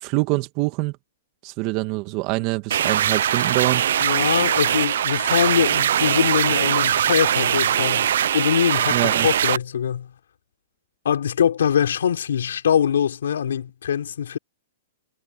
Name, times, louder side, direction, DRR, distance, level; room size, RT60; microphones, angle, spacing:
voice 1, 0.0-0.9 1.4-3.8 8.9-9.3, right 23 dB, 40° right, 2.0 m, -25 dB
sound 1, 2.7-9.6, right 10 dB, 70° right, 0.3 m, -21 dB
voice 2, 4.0-10.1 11.0-14.4, left 8 dB, 80° left, 4.4 m, -23 dB
hypercardioid pair, 135°, 0 cm